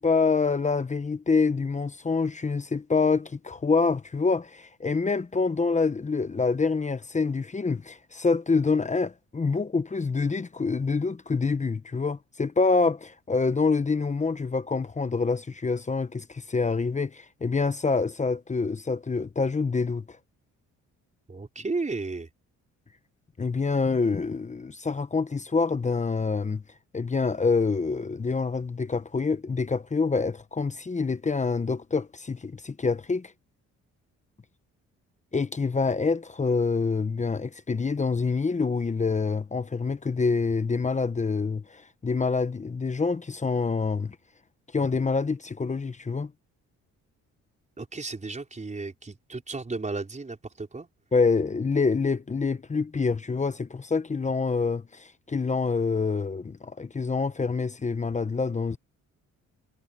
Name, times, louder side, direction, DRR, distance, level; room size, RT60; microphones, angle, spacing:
voice 1, 0.0-20.2 23.4-26.6 26.9-33.3 35.3-44.2 44.7-46.3 51.1-58.8, left 4 dB, 25° left, 1.1 m, -26 dB
voice 2, 21.3-22.3 47.8-50.9, right 3 dB, 25° right, 5.1 m, -34 dB
cardioid pair, 90°, 30 cm